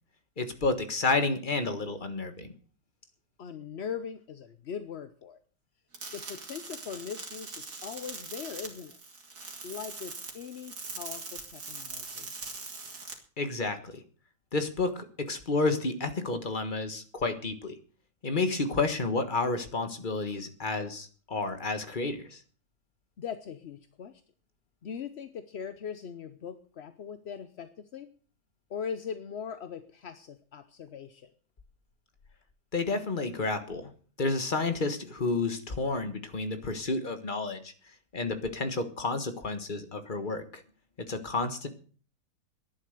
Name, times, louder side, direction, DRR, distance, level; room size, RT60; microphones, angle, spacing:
voice 1, 0.4-2.5 13.4-14.0 14.5-17.7 18.2-22.4 32.7-33.9 34.2-37.7 38.1-40.6 41.0-41.7, left 3 dB, 30° left, 9 dB, 1.6 m, -30 dB
voice 2, 3.4-5.4 6.1-9.0 9.6-12.3 23.2-24.2 24.8-28.1 28.7-31.3, left 7 dB, 50° left, 10 dB, 0.8 m, -40 dB
sound 1, 5.9-13.1, right 4 dB, 60° right, 3.0 m, -42 dB
12.0 x 11.0 x 6.6 m, 0.42 s
omnidirectional pair, 1.9 m